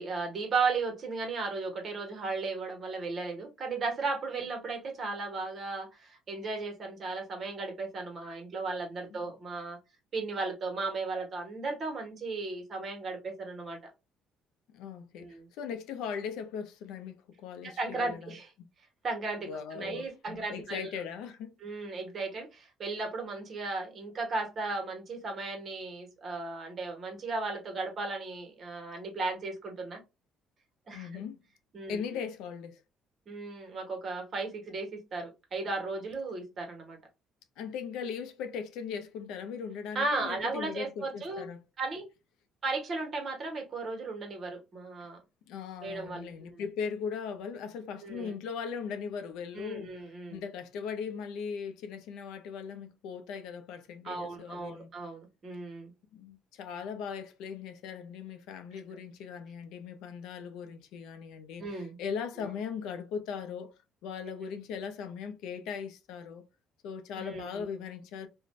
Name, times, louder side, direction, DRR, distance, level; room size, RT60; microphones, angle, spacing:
voice 1, 0.0-9.8 10.1-13.8 15.2-15.5 17.6-18.5 19.0-20.9 21.6-30.0 30.9-31.2 31.7-32.0 33.3-37.0 39.9-41.4 41.8-42.1 42.6-45.2 45.8-46.6 48.0-48.3 49.5-50.4 54.0-55.9 61.6-62.0 67.2-67.7, right 3 dB, 40° right, 1.1 m, -35 dB
voice 2, 14.7-18.3 19.5-21.9 30.9-31.4 31.9-32.8 37.6-41.6 45.5-49.9 50.3-54.9 56.1-63.7 64.0-66.4 66.8-68.3, left 6 dB, 85° left, 0.5 m, -39 dB
2.5 x 2.2 x 3.1 m
cardioid pair, 125°, 0 cm